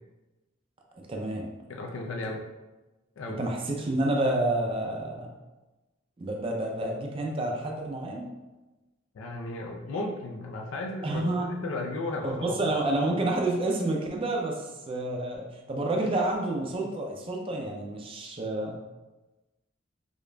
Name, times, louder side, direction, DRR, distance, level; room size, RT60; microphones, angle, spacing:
voice 1, 1.1-1.5 3.3-5.3 6.2-8.3 11.0-11.5 12.2-18.8, right 2 dB, 25° right, 0 dB, 0.4 m, -29 dB
voice 2, 1.7-2.4 3.2-3.4 9.1-11.2 11.6-12.6, left 2 dB, 90° left, 1 dB, 0.4 m, -34 dB
4.9 x 2.4 x 2.2 m, 1.1 s
head